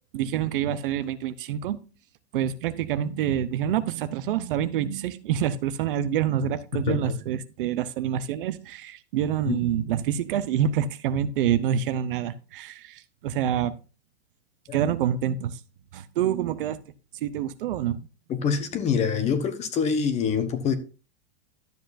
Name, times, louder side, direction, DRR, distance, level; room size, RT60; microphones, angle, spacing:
voice 1, 0.1-1.8 2.3-13.7 14.7-15.6 15.9-16.8 17.2-18.0, right 10 dB, 55° right, 13 dB, 0.9 m, -27 dB
voice 2, 18.3-20.7, left 6 dB, 20° left, 9 dB, 1.2 m, -25 dB
12.5 x 7.8 x 2.6 m, 0.33 s
hypercardioid pair, 150°, 32 cm